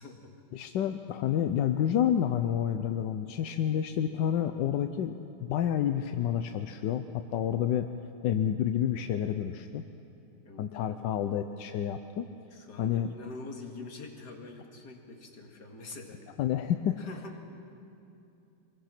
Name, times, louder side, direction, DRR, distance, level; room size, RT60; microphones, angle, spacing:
voice 1, 0.0-0.3 10.4-10.8 12.5-16.2 17.0-17.3, left 3 dB, 50° left, 2 dB, 2.5 m, -45 dB
voice 2, 0.5-5.1 5.4-7.9 8.2-9.8 10.6-12.2 12.8-13.1 16.4-17.0, left 10 dB, 70° left, 8 dB, 1.2 m, -29 dB
24.5 x 21.0 x 5.9 m, 2.7 s
omnidirectional pair, 2.3 m